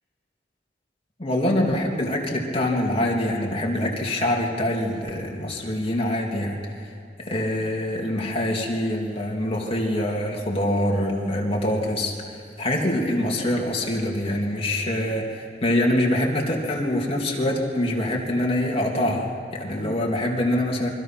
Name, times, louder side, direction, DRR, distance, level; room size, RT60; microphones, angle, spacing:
voice 1, 1.2-6.6 7.2-12.1 12.6-20.9, left 1 dB, 35° left, -1 dB, 2.9 m, -24 dB
28.0 x 23.0 x 6.0 m, 2.5 s
head